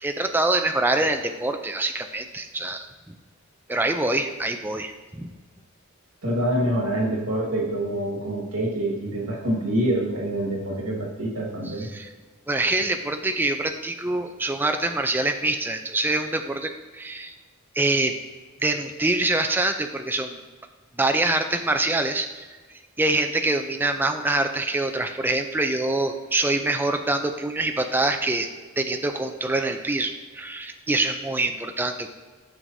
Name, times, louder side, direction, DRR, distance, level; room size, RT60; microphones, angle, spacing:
voice 1, 0.0-2.9 3.7-5.3 11.7-12.1 12.5-17.3 17.7-18.2 18.6-20.4 21.0-22.5 23.0-28.5 28.8-32.1, right 2 dB, 10° right, 5 dB, 0.4 m, -25 dB
voice 2, 6.2-11.9, right 1 dB, 85° right, -1 dB, 1.7 m, -26 dB
9.1 x 6.3 x 2.7 m, 1.4 s
head